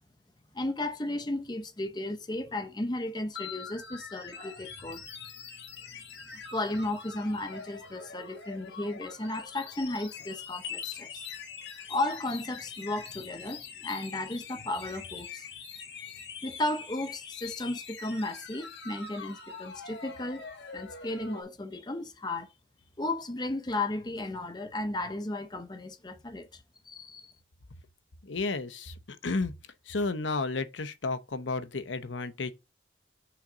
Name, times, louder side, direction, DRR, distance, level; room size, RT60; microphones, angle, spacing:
voice 1, 0.5-5.0 6.3-11.2 11.9-15.5 16.4-22.5 23.0-27.3, left 2 dB, 25° left, 0.7 m, -34 dB
sound 1, 3.4-21.4, left 6 dB, 70° left, 1.5 m, -43 dB
voice 2, 28.2-29.5 29.9-32.5, left 3 dB, 90° left, 0.9 m, -32 dB
5.8 x 3.9 x 5.0 m
head